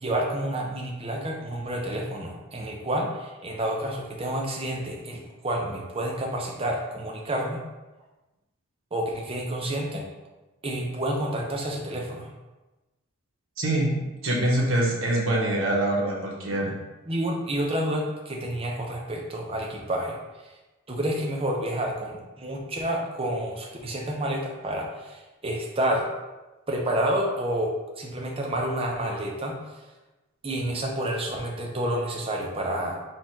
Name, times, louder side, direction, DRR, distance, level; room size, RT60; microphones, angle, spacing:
voice 1, 0.0-7.6 8.9-10.0 10.6-12.3 17.1-20.2 20.9-26.1 26.7-29.6 30.4-33.0, right 1 dB, 25° right, 0 dB, 0.6 m, -29 dB
voice 2, 13.6-13.9 14.2-16.7, right 1 dB, 60° right, -3 dB, 1.0 m, -24 dB
4.3 x 2.5 x 4.5 m, 1.1 s
head